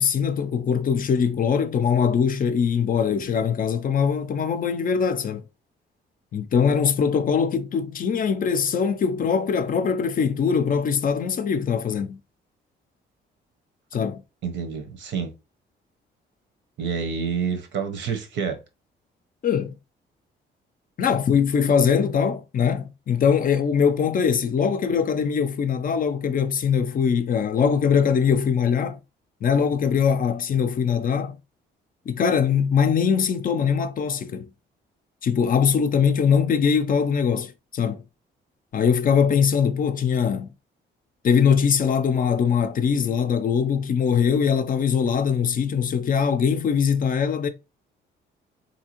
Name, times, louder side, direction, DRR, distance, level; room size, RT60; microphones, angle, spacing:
voice 1, 0.0-5.4 6.3-12.2 13.9-14.2 19.4-19.7 21.0-29.0 29.4-31.4 32.1-34.5 35.2-38.0 38.7-40.5 41.2-47.5, left 7 dB, 45° left, 0.5 m, -22 dB
voice 2, 14.4-15.3 16.8-18.6, right 6 dB, 65° right, 0.9 m, -28 dB
3.4 x 2.8 x 2.9 m
cardioid pair, 90°, 20 cm